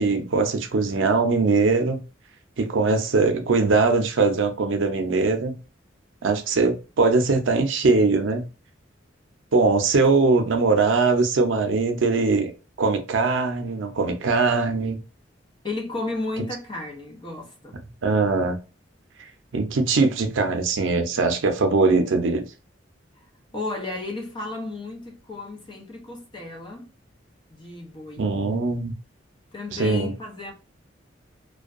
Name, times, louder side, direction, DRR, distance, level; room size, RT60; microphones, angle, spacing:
voice 1, 0.0-2.0 2.6-5.5 6.2-8.4 9.5-12.5 12.8-15.0 18.0-18.6 19.5-22.4 28.2-28.9 29.7-30.1, right 3 dB, 90° right, 0.5 m, -21 dB
voice 2, 15.6-17.8 23.5-26.9 27.5-28.3 29.5-30.5, left 2 dB, 25° left, 0.7 m, -33 dB
2.5 x 2.2 x 2.4 m
head